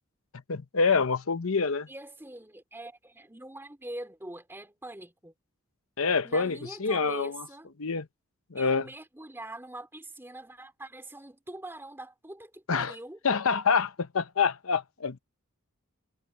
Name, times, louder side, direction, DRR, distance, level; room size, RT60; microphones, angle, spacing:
voice 1, 0.5-1.9 6.0-7.4 7.8-8.1 8.5-8.8 12.7-12.9 13.2-15.2, left 5 dB, 70° left, 0.9 m, -26 dB
voice 2, 1.9-5.3 6.2-7.7 8.5-13.2, right 1 dB, 10° right, 2.8 m, -43 dB
head